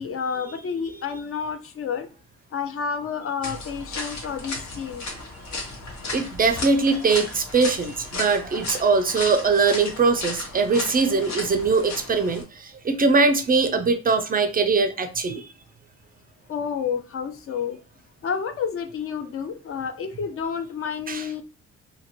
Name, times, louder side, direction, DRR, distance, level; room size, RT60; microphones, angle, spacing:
voice 1, 0.0-2.1 2.5-5.1 16.5-17.8 18.2-21.4, left 6 dB, 50° left, 0.5 m, -30 dB
sound 1, 3.4-12.4, left 3 dB, 65° left, 1.1 m, -35 dB
voice 2, 6.1-15.5 21.1-21.3, right 4 dB, 30° right, 0.4 m, -21 dB
2.7 x 2.5 x 2.9 m
cardioid pair, 90°, 30 cm